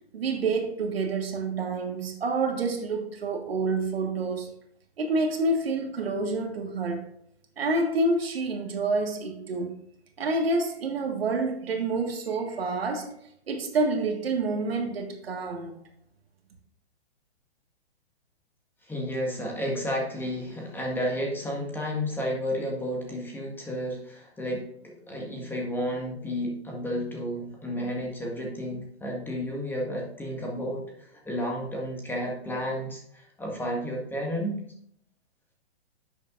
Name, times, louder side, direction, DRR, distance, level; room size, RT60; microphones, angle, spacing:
voice 1, 0.1-4.5 5.0-7.1 7.6-9.8 10.2-13.1 13.5-15.8, right 3 dB, 65° right, 1.7 m, -28 dB
voice 2, 18.8-34.6, equal, 5° left, 1.7 m, -32 dB
10.5 x 7.2 x 2.5 m
figure-of-eight pair, 125°, 32 cm